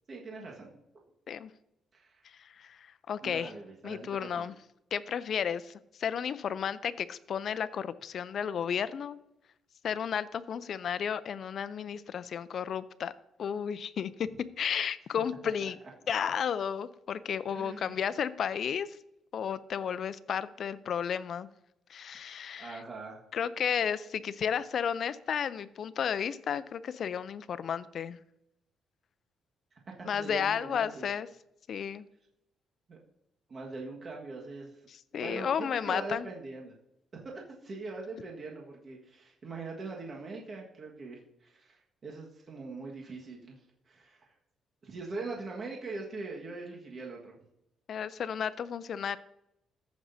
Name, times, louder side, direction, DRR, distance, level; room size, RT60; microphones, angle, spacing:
voice 1, 0.1-0.8 1.9-2.2 3.2-4.3 15.6-15.7 17.5-18.0 22.6-23.2 29.7-31.1 32.9-33.0 33.5-34.8 35.1-36.7 37.1-43.6 43.9-44.3 44.8-47.4, right 3 dB, 45° right, -1 dB, 1.6 m, -42 dB
voice 2, 3.1-3.5 3.8-4.5 4.9-5.7 6.0-9.2 9.8-13.1 13.4-15.8 16.1-18.9 19.3-21.5 21.9-22.8 23.3-28.2 30.1-31.3 31.7-32.0 35.1-36.3 47.9-49.2, left 8 dB, 60° left, 15 dB, 0.5 m, -33 dB
14.5 x 6.2 x 2.7 m, 0.81 s
cardioid pair, 90°, 0 cm